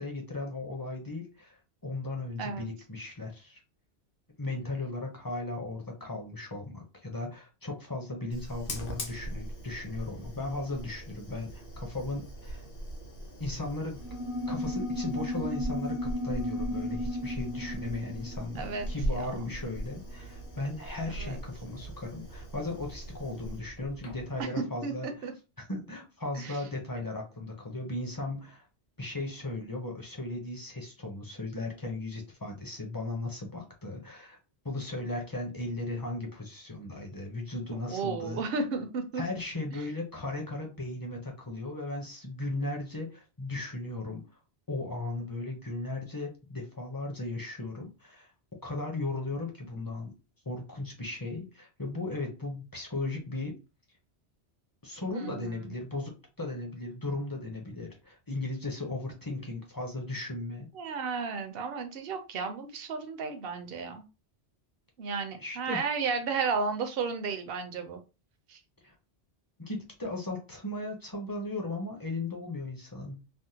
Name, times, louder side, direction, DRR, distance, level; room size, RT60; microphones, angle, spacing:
voice 1, 0.0-3.6 4.4-12.6 13.4-14.0 14.5-25.3 25.6-28.6 29.0-34.4 34.6-38.4 39.2-44.2 44.7-48.3 48.6-50.1 50.5-53.6 54.8-60.7 65.4-65.8 68.8-68.9 69.6-73.2, left 2 dB, 25° left, 1 dB, 0.6 m, -36 dB
Fire, 8.3-24.4, right 1 dB, 55° left, 1.0 m, -40 dB
sound 1, 14.0-19.9, left 1 dB, 25° right, 0.4 m, -35 dB
voice 2, 18.6-18.9 19.2-19.3 21.1-21.4 24.4-24.5 24.8-25.3 26.3-26.6 37.7-39.2 55.1-55.8 60.7-64.0 65.0-68.0 68.5-68.6, right 5 dB, 65° right, 6 dB, 0.8 m, -33 dB
3.4 x 2.1 x 2.8 m, 0.29 s
omnidirectional pair, 1.1 m